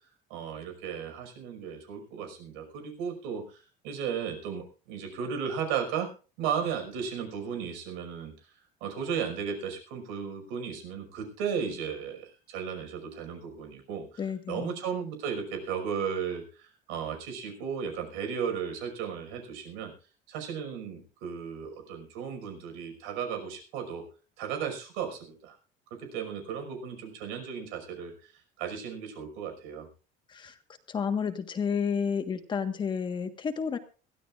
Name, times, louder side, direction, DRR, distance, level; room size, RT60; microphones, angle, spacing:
voice 1, 0.3-6.1 6.4-8.5 8.8-19.9 20.3-24.0 24.4-25.6 26.1-28.3 28.6-29.9, right 7 dB, 85° right, 5 dB, 5.6 m, -35 dB
voice 2, 14.2-14.8 30.3-30.6 30.9-33.8, left 6 dB, 25° left, 7 dB, 1.5 m, -31 dB
22.0 x 16.0 x 2.5 m, 0.36 s
cardioid pair, 165°, 19 cm